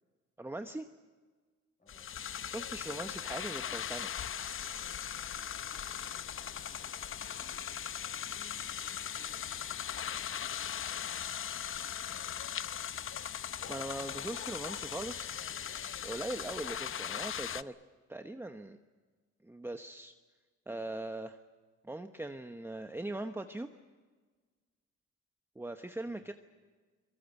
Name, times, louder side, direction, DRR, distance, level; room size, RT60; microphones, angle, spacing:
voice 1, 0.4-0.9 2.5-4.1 13.7-15.3 16.0-17.7 18.1-18.8 19.4-20.1 20.7-21.4 21.8-23.7 25.5-26.3, right 2 dB, 10° right, 7 dB, 1.0 m, -40 dB
voice 2, 1.8-2.1 5.4-7.7 8.2-12.7 26.0-26.3, left 1 dB, 25° left, 3 dB, 7.9 m, -64 dB
sound 1, 1.9-17.6, left 9 dB, 45° left, 0.7 m, -39 dB
23.5 x 22.0 x 8.3 m, 1.4 s
cardioid pair, 90°, 30 cm